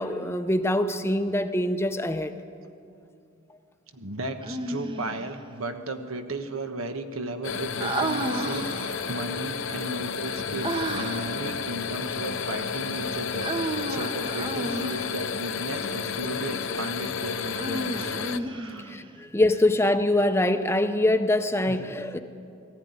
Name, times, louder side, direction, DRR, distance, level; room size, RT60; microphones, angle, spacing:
voice 1, 0.0-2.3 18.9-22.2, left 1 dB, 10° left, 9 dB, 0.6 m, -24 dB
voice 2, 3.9-18.1 18.4-19.0 21.7-21.8, right 2 dB, 80° right, 7 dB, 1.3 m, -35 dB
Human voice, 4.4-5.3 7.8-9.1 10.6-11.4 13.4-15.2 17.5-19.1, right 1 dB, 25° right, 0.8 m, -32 dB
sound 1, 7.4-18.4, left 6 dB, 65° left, 0.7 m, -32 dB
18.5 x 15.0 x 9.6 m, 2.6 s
head